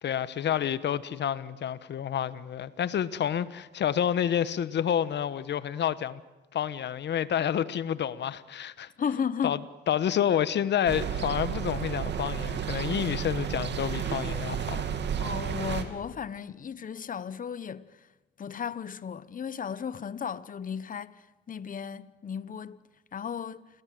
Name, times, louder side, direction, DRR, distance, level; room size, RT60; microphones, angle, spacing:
voice 1, 0.0-6.2 6.5-8.9 9.4-9.6 9.9-14.9, left 9 dB, 60° left, 1.2 m, -29 dB
voice 2, 9.0-9.6 15.2-17.9 18.4-22.8 23.1-23.7, left 7 dB, 45° left, 1.1 m, -35 dB
sound 1, 10.9-15.8, right 8 dB, 60° right, 2.8 m, -32 dB
28.5 x 22.0 x 7.8 m
cardioid pair, 90°, 20 cm